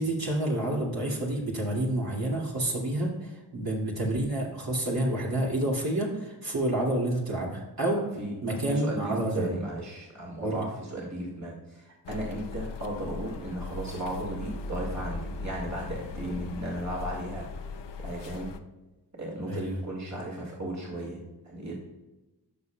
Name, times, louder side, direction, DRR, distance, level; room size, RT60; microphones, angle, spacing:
voice 1, 0.0-8.0 8.4-9.6 10.4-10.6 19.5-19.8, right 1 dB, 60° right, -4 dB, 2.6 m, -29 dB
voice 2, 8.2-17.5 18.0-18.6 19.1-21.7, right 1 dB, 40° right, -3 dB, 2.3 m, -35 dB
sound 1, 12.1-18.6, left 3 dB, 85° left, 0.6 m, -38 dB
13.0 x 5.4 x 2.3 m, 1.1 s
cardioid pair, 40°, 41 cm